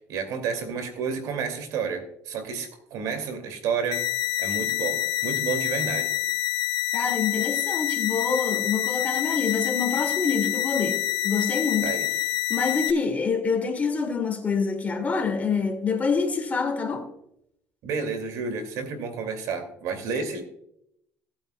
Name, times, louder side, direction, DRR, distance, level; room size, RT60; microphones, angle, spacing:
voice 1, 0.1-4.1 4.4-6.1 11.8-12.1 17.8-20.4, right 5 dB, 80° right, 2.5 m, -30 dB
sound 1, 3.9-12.9, left 13 dB, 85° left, 0.7 m, -27 dB
voice 2, 6.9-11.9 12.5-17.1, left 5 dB, 25° left, 2.3 m, -26 dB
18.0 x 8.7 x 2.3 m
cardioid pair, 105°, 6 cm